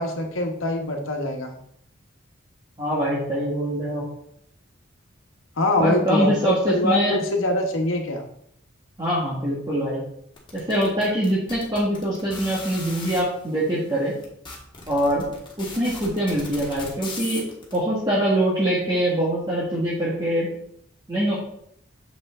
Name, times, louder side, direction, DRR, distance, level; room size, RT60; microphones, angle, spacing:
voice 1, 0.0-1.5 5.6-8.2, left 1 dB, 80° left, 3 dB, 1.3 m, -24 dB
voice 2, 2.8-4.0 5.8-7.2 9.0-10.0 10.5-14.1 14.9-15.2 15.6-17.4 17.7-20.5 21.1-21.3, right 1 dB, 20° right, -8 dB, 1.8 m, -23 dB
sound 1, 10.4-13.2 13.9-14.0 14.2-17.8, left 3 dB, 25° left, 1.6 m, -37 dB
7.3 x 5.5 x 3.7 m, 0.69 s
head